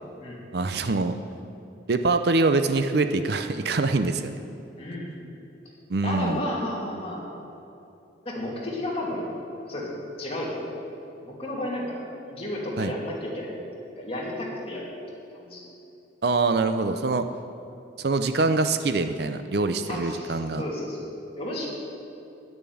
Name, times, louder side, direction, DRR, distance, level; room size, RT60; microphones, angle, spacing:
voice 1, 0.5-1.2 1.9-4.4 5.9-6.4 12.8-12.9 16.2-17.2 18.0-20.6, right 3 dB, 60° right, 9 dB, 0.5 m, -24 dB
voice 2, 4.8-5.3 6.0-7.2 8.2-9.3 9.7-9.9 10.2-10.7 11.2-12.0 12.3-13.7 14.0-14.9 15.3-15.7 19.9-21.0 21.4-21.7, left 1 dB, 30° left, -4 dB, 2.5 m, -32 dB
10.5 x 6.9 x 9.3 m, 2.8 s
head